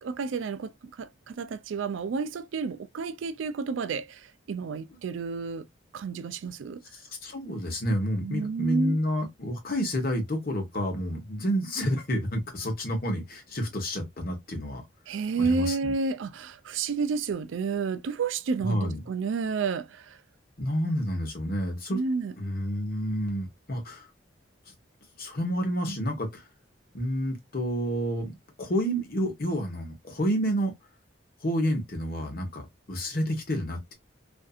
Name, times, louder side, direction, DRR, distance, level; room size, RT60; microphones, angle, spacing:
voice 1, 0.0-5.7 5.9-6.8 8.2-9.0 15.1-20.2 21.9-22.3, right 4 dB, 80° right, 0.4 m, -30 dB
voice 2, 7.2-14.8 15.4-15.9 18.6-19.0 20.6-22.0 22.4-24.1 25.2-26.4 26.9-30.7 31.4-33.9, equal, 50° left, 1.0 m, -29 dB
2.6 x 2.5 x 2.4 m
head